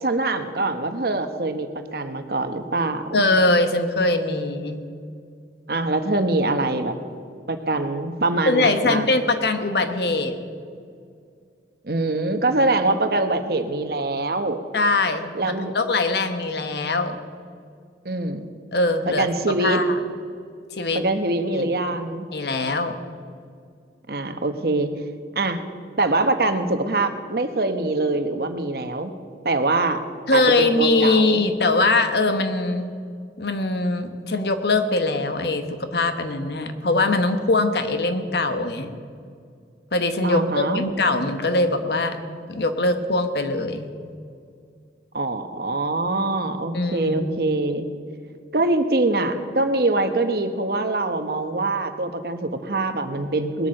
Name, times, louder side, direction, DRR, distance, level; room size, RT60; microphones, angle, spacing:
voice 1, 0.0-3.3 5.7-7.0 7.5-9.1 11.8-14.6 15.3-15.7 18.0-18.5 19.1-19.8 20.9-22.3 24.1-24.9 25.3-25.6 26.0-29.1 29.4-30.0 30.3-31.4 40.2-40.8 45.1-47.9 48.5-53.7, right 2 dB, 55° right, 8 dB, 1.0 m, -24 dB
voice 2, 3.1-4.8 8.5-10.4 14.7-15.3 15.7-17.2 18.7-19.3 19.6-20.0 20.7-21.0 21.5-21.7 22.3-23.0 30.3-32.9 33.4-38.9 39.9-42.2 42.5-43.9 46.7-47.5, left 2 dB, 65° left, 8 dB, 1.1 m, -22 dB
20.0 x 8.7 x 6.5 m, 2.2 s
head